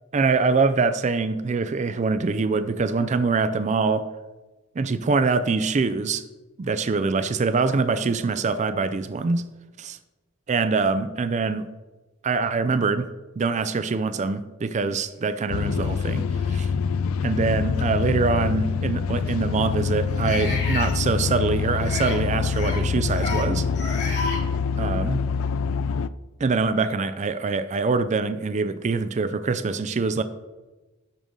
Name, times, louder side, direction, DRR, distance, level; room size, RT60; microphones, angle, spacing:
voice 1, 0.1-4.1 4.8-6.2 6.6-9.5 9.8-10.0 10.5-11.7 12.2-13.1 13.4-16.7 17.2-23.7 24.8-25.2 26.4-30.2, right 4 dB, 35° right, 12 dB, 0.4 m, -24 dB
sound 1, 15.4-15.5 16.3-16.4 18.0-18.1 20.2-20.9 21.8-22.2 22.5-22.8 23.1-23.5 23.7-24.4, left 3 dB, 55° left, 2.6 m, -31 dB
sound 2, 15.5-26.1, left 5 dB, 80° left, 0.3 m, -25 dB
10.5 x 6.4 x 3.8 m, 1.1 s
head